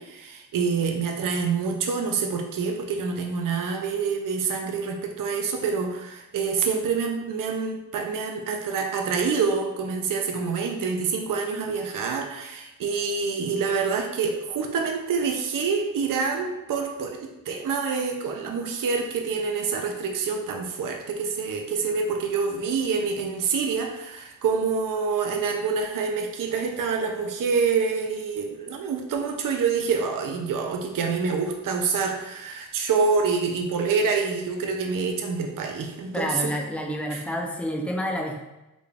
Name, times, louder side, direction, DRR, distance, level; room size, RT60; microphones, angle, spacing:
voice 1, 0.0-36.6 37.1-37.2, right 5 dB, 65° right, 3 dB, 0.5 m, -27 dB
voice 2, 36.1-38.4, equal, 5° left, 1 dB, 0.3 m, -29 dB
3.8 x 2.2 x 3.3 m, 0.98 s
wide cardioid pair, 140°, 36 cm